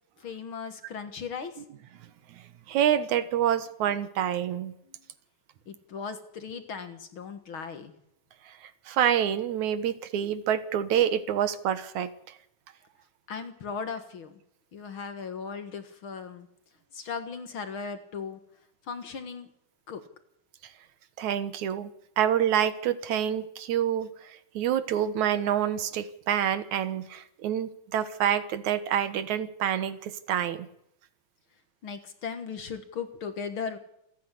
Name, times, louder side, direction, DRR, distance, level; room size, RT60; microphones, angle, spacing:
voice 1, 0.2-1.6 4.9-5.0 5.7-7.9 13.3-14.3 14.7-16.5 16.9-18.4 18.8-19.5 19.9-20.0 31.8-33.8, left 6 dB, 50° left, 9 dB, 2.1 m, -37 dB
voice 2, 2.7-4.7 8.5-8.6 8.9-12.1 21.2-21.9 22.2-30.7, right 10 dB, 80° right, 12 dB, 2.7 m, -27 dB
28.0 x 10.0 x 9.8 m, 0.77 s
omnidirectional pair, 3.3 m